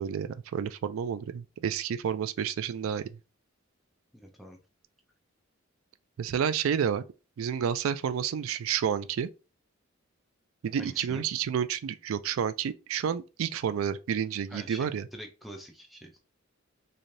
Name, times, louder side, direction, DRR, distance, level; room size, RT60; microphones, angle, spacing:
voice 1, 0.0-3.1 6.2-7.0 7.4-9.3 10.6-15.1, right 8 dB, 90° right, 0.3 m, -30 dB
voice 2, 4.1-4.6 10.8-11.2 14.5-16.2, equal, ahead, 0.5 m, -45 dB
3.1 x 2.7 x 2.6 m
head